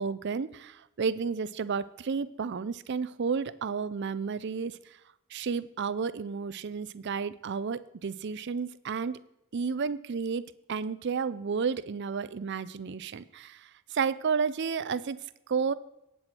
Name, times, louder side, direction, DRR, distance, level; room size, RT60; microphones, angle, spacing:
voice 1, 0.0-4.8 5.3-9.2 9.5-15.2 15.5-15.7, right 5 dB, 55° right, 16 dB, 0.5 m, -32 dB
17.5 x 7.8 x 4.4 m, 0.88 s
head